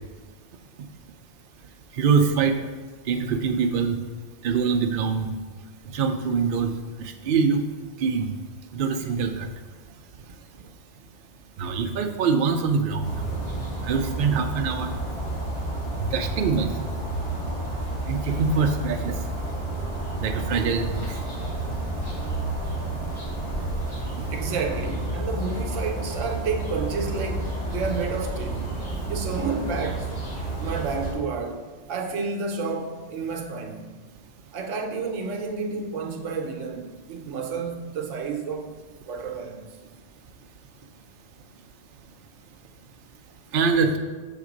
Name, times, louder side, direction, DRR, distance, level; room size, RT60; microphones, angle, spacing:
voice 1, 1.9-2.6 3.1-4.0 4.4-5.3 5.9-6.7 7.0-7.7 8.0-8.3 8.7-9.5 11.6-13.2 13.8-14.9 16.0-16.7 18.1-19.1 20.2-21.0 43.5-44.0, right 5 dB, 60° right, 0.6 m, -24 dB
sound 1, 13.0-31.1, right 1 dB, 55° left, 2.2 m, -30 dB
voice 2, 24.3-30.2 30.6-33.8 34.5-38.7 39.0-39.7, right 4 dB, 80° right, 1.0 m, -30 dB
6.5 x 3.6 x 5.0 m
omnidirectional pair, 1.3 m